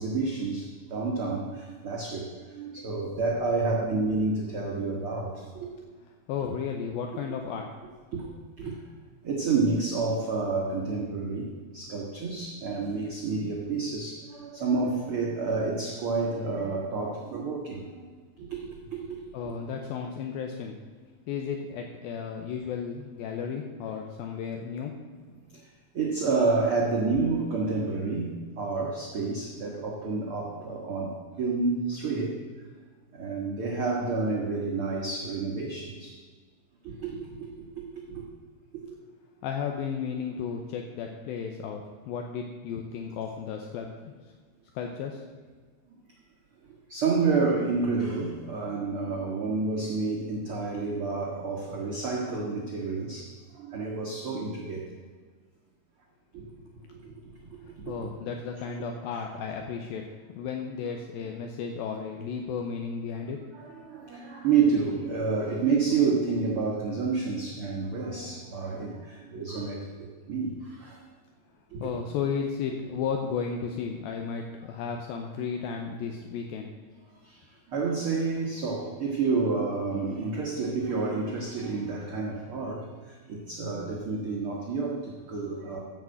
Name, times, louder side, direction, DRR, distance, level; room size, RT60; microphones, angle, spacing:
voice 1, 0.0-5.7 8.1-8.3 8.6-8.8 9.2-18.1 18.4-19.5 25.5-32.4 33.1-36.2 36.8-38.2 38.9-39.0 46.6-54.9 56.3-57.1 57.4-58.1 63.5-71.0 71.7-72.0 77.2-85.8, right 4 dB, 65° right, -2 dB, 1.3 m, -29 dB
voice 2, 6.3-7.7 19.3-20.8 21.3-25.0 39.4-44.1 44.7-45.2 57.6-60.0 60.4-63.4 71.8-76.7, left 6 dB, 80° left, 2 dB, 2.5 m, -34 dB
14.0 x 5.9 x 7.5 m, 1.5 s
omnidirectional pair, 4.5 m